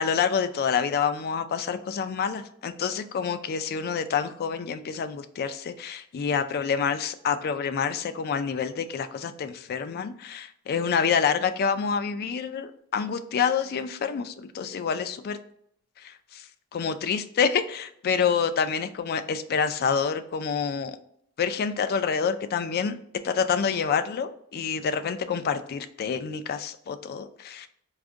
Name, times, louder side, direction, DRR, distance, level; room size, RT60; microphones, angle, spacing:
voice 1, 0.0-15.4 16.0-21.0 21.4-23.0 23.2-27.7, left 6 dB, 45° left, 10 dB, 0.3 m, -27 dB
4.7 x 2.4 x 2.5 m, 0.68 s
head